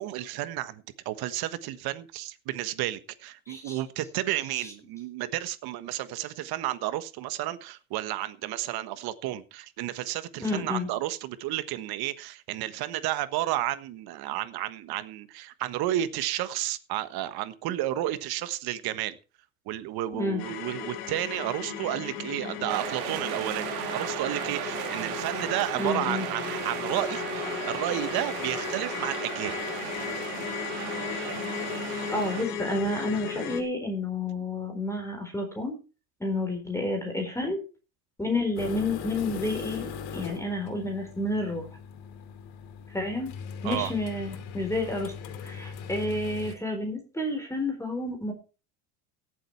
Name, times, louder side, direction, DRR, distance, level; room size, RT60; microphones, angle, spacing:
voice 1, 0.0-19.2 19.7-29.6 43.6-43.9, right 14 dB, 60° right, 1.4 m, -32 dB
voice 2, 3.5-3.8 10.4-10.9 20.1-20.4 25.7-26.2 32.1-35.8 36.2-37.6 38.2-41.6 42.9-43.3 43.6-45.1 45.4-48.3, left 2 dB, 5° left, 4.2 m, -30 dB
sound 1, 20.4-33.6, left 8 dB, 85° left, 2.8 m, -35 dB
sound 2, 22.7-32.4, right 12 dB, 80° right, 2.0 m, -36 dB
sound 3, 38.6-46.5, left 6 dB, 60° left, 2.8 m, -40 dB
17.0 x 7.7 x 4.6 m
supercardioid pair, 100°, 43 cm